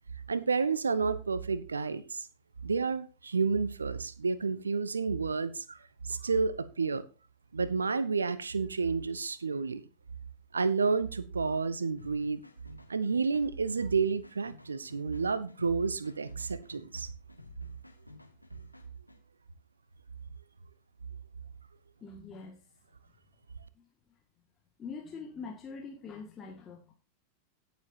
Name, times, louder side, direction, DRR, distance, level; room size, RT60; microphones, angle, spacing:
voice 1, 0.3-2.3 2.6-5.8 6.0-7.0 7.5-9.9 10.5-12.4 12.9-17.1, right 4 dB, 75° right, 0.9 m, -30 dB
sound 1, 12.0-19.2, left 3 dB, 90° left, 1.9 m, -53 dB
voice 2, 22.0-22.6 23.8-23.9 24.8-26.9, left 4 dB, 25° left, 2.0 m, -43 dB
16.5 x 7.4 x 2.8 m
figure-of-eight pair, 90°, 0 cm